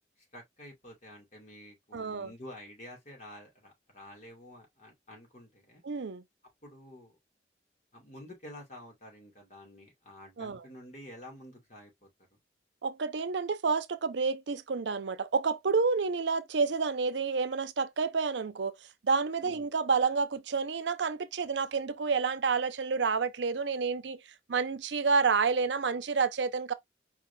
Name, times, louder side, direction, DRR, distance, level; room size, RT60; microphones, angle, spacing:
voice 1, 0.3-5.8 6.6-7.1 7.9-12.1 19.4-19.7, left 1 dB, 40° left, 2.8 m, -49 dB
voice 2, 1.9-2.3 5.8-6.2 10.4-10.6 12.8-18.7 19.0-24.2 24.5-26.7, right 5 dB, 85° right, 0.6 m, -29 dB
4.7 x 3.5 x 2.7 m
head